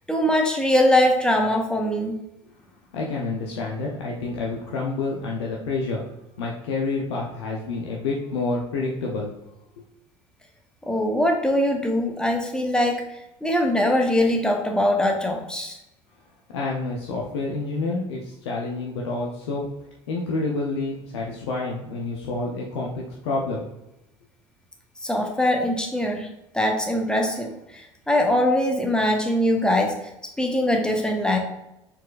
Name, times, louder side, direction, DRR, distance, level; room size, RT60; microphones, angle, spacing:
voice 1, 0.1-2.1 10.9-13.0 13.4-15.8 25.0-26.3 26.5-29.9 30.4-31.4, left 1 dB, 5° left, 2 dB, 0.8 m, -22 dB
voice 2, 2.9-6.0 6.4-9.3 16.5-19.7 20.1-23.7, left 3 dB, 70° left, -2 dB, 0.6 m, -28 dB
4.2 x 4.1 x 2.4 m, 0.88 s
figure-of-eight pair, 65°, 15 cm